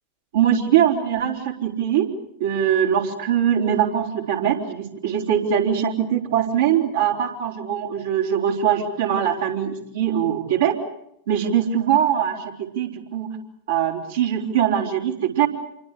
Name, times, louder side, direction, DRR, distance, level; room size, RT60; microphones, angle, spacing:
voice 1, 0.3-2.1 2.4-10.7 11.3-13.4 13.7-15.5, right 9 dB, 60° right, -2 dB, 4.3 m, -22 dB
28.0 x 24.5 x 6.8 m, 0.76 s
figure-of-eight pair, 90°, 0 cm